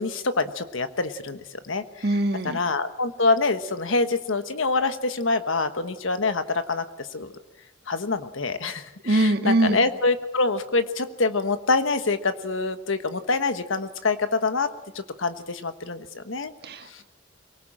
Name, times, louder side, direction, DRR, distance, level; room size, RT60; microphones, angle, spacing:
voice 1, 0.0-2.1 2.4-7.3 7.9-16.5 16.9-17.0, left 3 dB, 80° left, 10 dB, 1.3 m, -26 dB
voice 2, 2.0-2.6 9.0-9.8 16.6-17.0, right 1 dB, 50° right, 6 dB, 1.7 m, -23 dB
23.5 x 18.5 x 7.5 m, 0.97 s
head